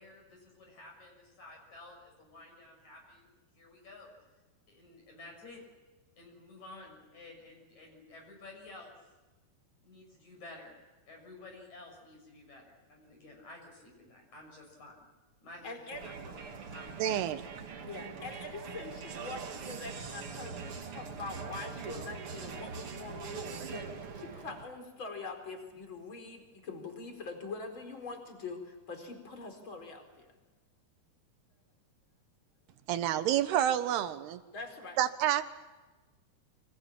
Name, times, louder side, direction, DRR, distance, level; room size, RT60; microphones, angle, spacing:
voice 1, 0.0-4.1 4.7-5.6 6.2-9.0 9.8-10.8 11.1-15.1 15.4-17.2, left 2 dB, 45° left, 1 dB, 7.9 m, -52 dB
voice 2, 15.6-16.0 17.8-30.3 34.5-35.0, left 3 dB, 30° left, 5 dB, 5.0 m, -44 dB
Crowd, 15.9-24.8, right 5 dB, 45° right, 2.3 m, -43 dB
voice 3, 17.0-17.4 32.9-34.4 35.0-35.4, right 11 dB, 85° right, 11 dB, 3.4 m, -28 dB
29.5 x 25.5 x 7.4 m, 1.2 s
omnidirectional pair, 4.5 m